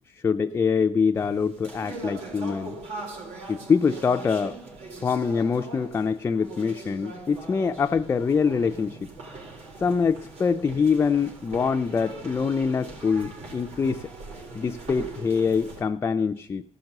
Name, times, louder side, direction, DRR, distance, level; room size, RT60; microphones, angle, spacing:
voice 1, 0.1-2.8 3.5-4.6 5.0-9.0 9.8-14.1 14.5-16.6, left 5 dB, 20° left, 7 dB, 0.4 m, -24 dB
sound 1, 1.2-15.8, right 2 dB, 75° right, 3.9 m, -41 dB
15.5 x 5.9 x 6.5 m, 0.71 s
cardioid pair, 145°, 11 cm